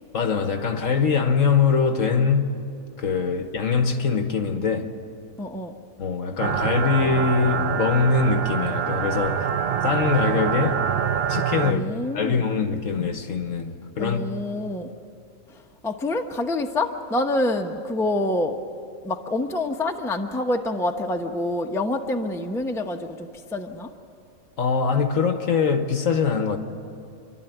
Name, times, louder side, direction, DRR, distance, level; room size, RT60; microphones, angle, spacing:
voice 1, 0.1-2.6 3.0-4.9 6.0-9.5 9.8-10.8 11.3-11.8 12.1-14.2 24.6-26.6, left 5 dB, 65° left, 1.6 m, -23 dB
voice 2, 5.4-5.7 11.6-12.4 14.0-14.9 15.5-18.6 19.0-23.9, left 2 dB, ahead, 0.8 m, -27 dB
sound 1, 6.4-11.7, right 8 dB, 55° right, 0.8 m, -25 dB
27.5 x 12.0 x 9.2 m
omnidirectional pair, 1.5 m